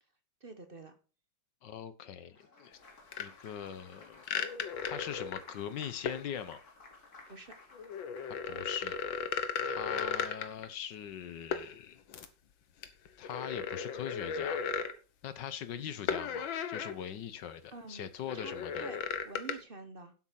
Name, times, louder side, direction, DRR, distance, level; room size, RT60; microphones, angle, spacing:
voice 1, 0.4-0.9 7.3-7.5 15.8-15.9 17.7-18.1 18.3-20.1, right 3 dB, 35° right, 1.0 m, -47 dB
voice 2, 1.6-2.8 3.2-4.4 4.8-6.6 8.3-9.0 9.6-12.0 13.2-14.6 15.2-18.9, left 9 dB, 70° left, 1.6 m, -41 dB
Applause, 2.2-10.0, left 3 dB, 50° left, 3.0 m, -56 dB
sound 1, 3.1-3.2 4.2-5.5 6.1-6.2 7.7-10.7 11.5-11.7 12.1-12.3 12.8-14.9 16.1-17.0 17.4-17.5 18.3-19.5, left 7 dB, 90° left, 1.9 m, -35 dB
8.7 x 8.1 x 5.9 m
omnidirectional pair, 2.1 m